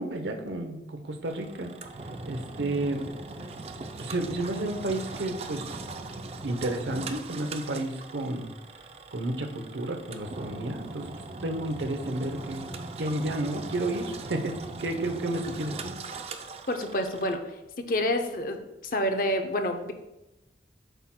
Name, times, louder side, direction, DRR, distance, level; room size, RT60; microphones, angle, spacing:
voice 1, 0.0-1.7 2.2-3.1 4.0-5.8 6.4-8.5 9.1-12.7 13.0-14.6 14.8-15.9, right 1 dB, 85° right, 5 dB, 0.8 m, -31 dB
Engine, 1.2-17.4, right 3 dB, 35° right, 0.4 m, -40 dB
voice 2, 16.7-17.5 17.9-18.6 18.9-19.9, left 1 dB, 50° left, 5 dB, 0.6 m, -28 dB
8.0 x 5.8 x 2.2 m, 0.96 s
head